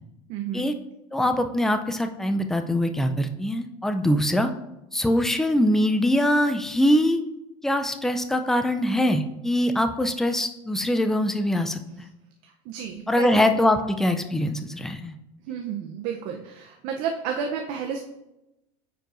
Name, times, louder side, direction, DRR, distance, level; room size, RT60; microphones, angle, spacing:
voice 1, 0.3-0.7 12.4-13.4 15.4-18.0, right 7 dB, 55° right, 3 dB, 0.7 m, -31 dB
voice 2, 1.1-4.5 4.9-7.2 7.6-12.1 13.1-15.1, left 1 dB, 5° left, 7 dB, 0.4 m, -23 dB
9.2 x 4.5 x 2.6 m, 0.91 s
supercardioid pair, 115°, 16 cm